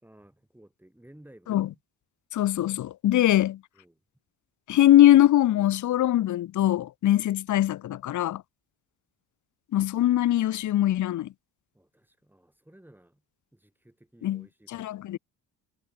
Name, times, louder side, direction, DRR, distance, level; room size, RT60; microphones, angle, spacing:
voice 1, 0.0-1.8 3.7-4.0 11.7-13.2 13.5-15.2, right 1 dB, 5° right, 5.7 m, -56 dB
voice 2, 2.3-3.6 4.7-8.4 9.7-11.3 14.2-14.4 14.7-15.2, left 13 dB, 50° left, 0.7 m, -22 dB
cardioid pair, 155°, 39 cm